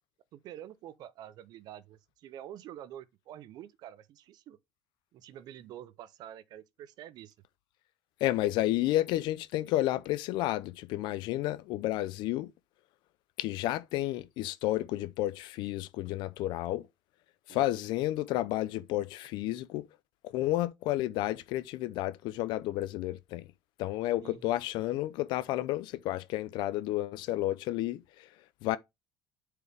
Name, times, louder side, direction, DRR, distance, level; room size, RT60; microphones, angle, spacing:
voice 1, 0.3-4.6 5.1-7.3 17.5-17.7 24.2-24.4, right 11 dB, 60° right, 0.6 m, -47 dB
voice 2, 8.2-12.5 13.4-16.9 17.5-19.9 20.3-23.5 23.8-28.3 28.6-28.8, left 15 dB, 75° left, 0.5 m, -31 dB
8.1 x 4.8 x 3.3 m
cardioid pair, 145°, 8 cm